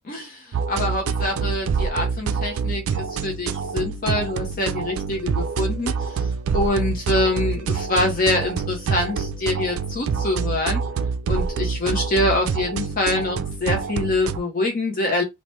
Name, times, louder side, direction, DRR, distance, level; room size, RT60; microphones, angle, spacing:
voice 1, 0.1-10.8 11.2-15.2, left 2 dB, 40° left, 0.6 m, -25 dB
sound 1, 0.5-14.4, right 5 dB, 75° right, 0.3 m, -26 dB
3.1 x 2.1 x 3.1 m
head